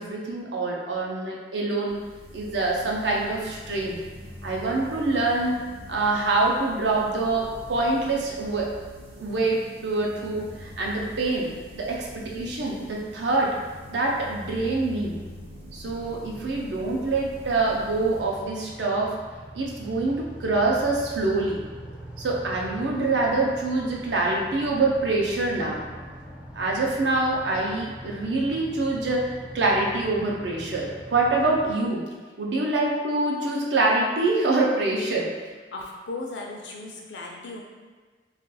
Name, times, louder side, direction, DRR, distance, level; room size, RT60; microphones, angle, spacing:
voice 1, 0.0-2.0 2.3-4.0 4.4-5.6 5.9-8.7 9.2-11.5 11.7-13.6 13.9-15.2 15.7-19.1 19.5-21.6 22.2-25.8 26.6-29.3 29.5-32.0 32.4-35.3, right 2 dB, 80° right, -2 dB, 0.6 m, -25 dB
sound 1, 1.9-19.4, equal, 35° right, 0.7 m, -44 dB
sound 2, 15.8-31.7, right 1 dB, 5° right, 0.4 m, -43 dB
voice 2, 35.7-37.6, left 2 dB, 80° left, -1 dB, 0.6 m, -36 dB
2.5 x 2.3 x 3.9 m, 1.4 s
head